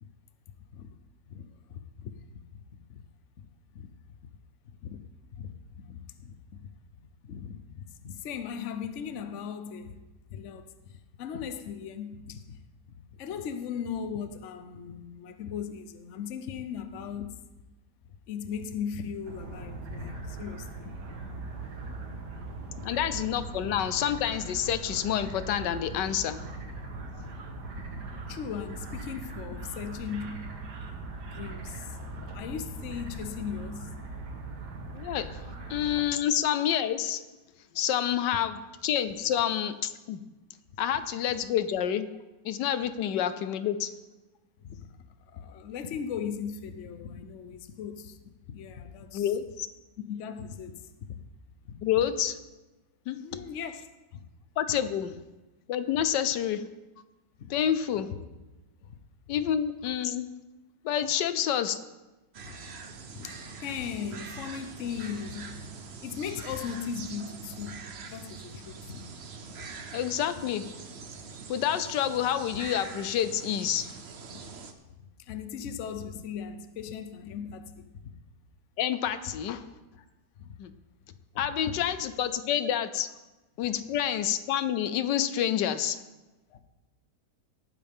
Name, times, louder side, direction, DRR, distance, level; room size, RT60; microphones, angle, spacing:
voice 1, 1.7-2.1 2.9-3.0 3.4-3.5 3.7-3.9 4.6-5.1 5.4-6.7 7.2-10.0 10.3-12.6 13.2-17.4 18.3-20.9 22.7-22.8 27.1-27.4 27.8-27.9 28.3-30.7 31.3-32.0 32.3-33.9 39.3-39.4 44.6-44.9 45.3-49.3 50.1-50.8 51.1-51.2 51.6-51.8 53.1-53.8 57.4-57.5 58.8-59.0 62.4-62.7 63.1-65.6 66.0-69.0 74.6-78.1 79.9-80.0 80.4-80.5 81.1-81.8 86.5-86.6, left 7 dB, 55° left, 1.0 m, -38 dB
sound 1, 19.2-36.0, right 3 dB, 70° right, 2.0 m, -40 dB
voice 2, 22.8-26.4 34.9-35.3 35.7-37.2 37.7-39.7 40.1-40.2 40.8-42.1 42.4-43.9 49.1-49.7 51.8-52.4 53.1-53.2 54.6-55.1 55.7-56.6 57.5-58.1 59.3-60.3 60.8-61.7 69.9-70.7 71.5-73.9 78.8-79.6 80.6-80.7 81.4-83.1 83.6-86.0, left 10 dB, 80° left, 1.3 m, -28 dB
sound 2, 62.3-74.7, right 5 dB, 45° right, 1.0 m, -43 dB
18.0 x 9.5 x 3.6 m
omnidirectional pair, 1.9 m